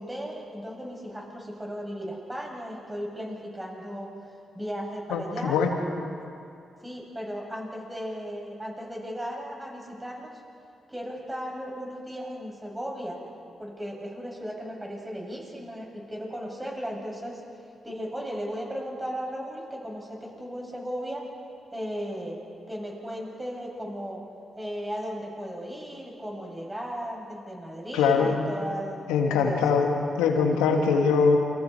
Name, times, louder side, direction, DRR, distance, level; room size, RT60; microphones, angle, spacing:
voice 1, 0.0-5.6 6.8-10.3 10.9-13.2 13.6-21.2 21.7-22.4 22.7-24.2 24.6-29.6, equal, 15° right, -1 dB, 7.8 m, -36 dB
voice 2, 5.1-5.7 27.9-28.3 29.1-29.9 30.2-31.4, left 5 dB, 85° left, 2 dB, 2.4 m, -22 dB
29.0 x 25.5 x 4.7 m, 2.5 s
hypercardioid pair, 40°, 0 cm